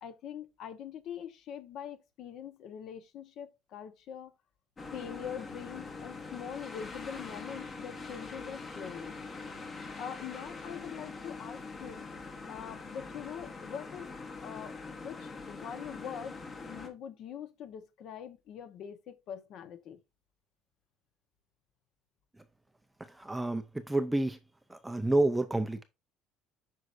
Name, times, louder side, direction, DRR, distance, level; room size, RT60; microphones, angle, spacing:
voice 1, 0.0-4.3 4.9-9.1 10.0-12.0 12.5-14.2 14.4-20.0, left 8 dB, 50° left, 1.0 m, -43 dB
sound 1, 4.8-16.9, left 3 dB, 20° left, 1.1 m, -43 dB
voice 2, 23.0-24.4 24.7-25.8, right 2 dB, 5° right, 0.5 m, -29 dB
7.8 x 5.5 x 2.6 m
cardioid pair, 165°, 0 cm